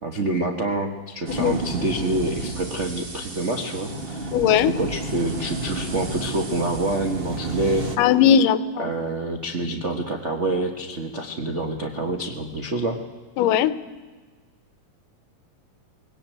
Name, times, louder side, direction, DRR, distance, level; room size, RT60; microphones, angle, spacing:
voice 1, 0.0-7.9 8.8-13.0, right 2 dB, 80° right, 4 dB, 0.6 m, -27 dB
sound 1, 1.3-8.0, right 2 dB, 40° right, 0.8 m, -32 dB
voice 2, 4.3-4.7 8.0-8.9 13.4-13.7, left 9 dB, 85° left, 15 dB, 2.4 m, -18 dB
20.5 x 17.5 x 9.0 m, 1.4 s
omnidirectional pair, 3.7 m